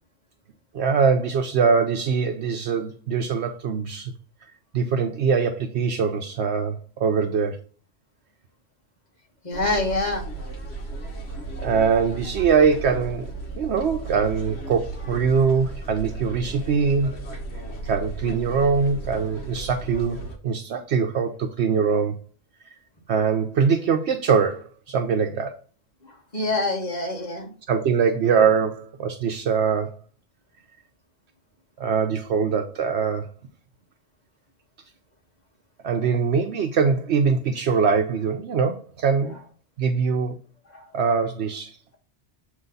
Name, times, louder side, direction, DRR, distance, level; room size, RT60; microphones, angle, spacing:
voice 1, 0.7-4.1 4.7-7.6 11.6-17.2 17.8-22.2 23.1-25.5 27.7-30.0 31.8-33.3 35.8-39.4 39.8-40.4 40.9-41.7, right 6 dB, 70° right, 0.9 m, -22 dB
voice 2, 9.4-10.2 26.1-27.5 40.7-40.8, left 2 dB, 40° left, 1.8 m, -26 dB
sound 1, 9.5-20.4, right 2 dB, 65° left, 1.6 m, -35 dB
7.9 x 3.2 x 3.8 m
omnidirectional pair, 1.2 m